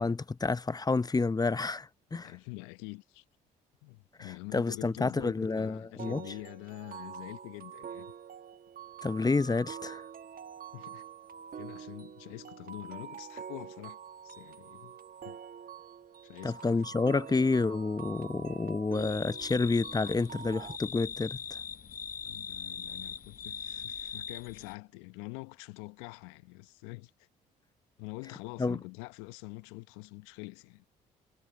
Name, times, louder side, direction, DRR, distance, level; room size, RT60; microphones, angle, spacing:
voice 1, 0.0-2.3 4.2-6.2 9.0-10.0 16.4-21.6 28.6-28.8, left 3 dB, 20° left, 0.8 m, -29 dB
voice 2, 2.1-3.2 3.8-8.1 10.7-11.1 11.5-14.0 14.2-15.0 15.2-15.4 16.2-16.8 22.2-27.3 28.0-30.8, left 26 dB, 75° left, 1.1 m, -45 dB
sound 1, 6.0-20.8, right 7 dB, 45° right, 1.3 m, -46 dB
sound 2, 18.9-24.7, left 6 dB, 45° left, 1.2 m, -41 dB
hypercardioid pair, 50°, 21 cm